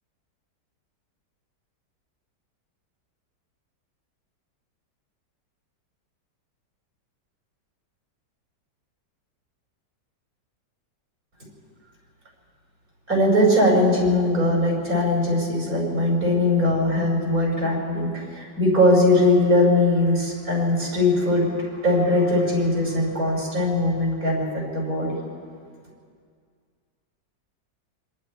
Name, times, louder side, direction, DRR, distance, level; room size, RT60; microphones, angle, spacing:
voice 1, 13.1-25.2, left 1 dB, 50° right, -3 dB, 6.1 m, -20 dB
27.0 x 24.0 x 4.6 m, 2.1 s
omnidirectional pair, 1.9 m